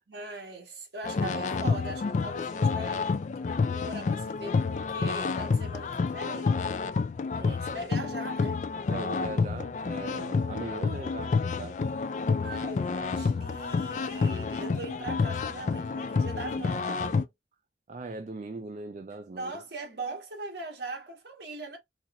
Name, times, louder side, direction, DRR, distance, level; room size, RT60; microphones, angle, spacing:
voice 1, 0.1-3.2 3.7-6.6 7.3-8.6 10.6-10.7 12.4-17.3 19.3-21.8, right 2 dB, 75° right, 1.6 m, -40 dB
sound 1, 1.0-17.2, left 4 dB, 45° left, 0.3 m, -29 dB
voice 2, 8.9-11.9 17.9-19.5, right 3 dB, 40° right, 0.4 m, -39 dB
4.1 x 2.9 x 2.5 m
head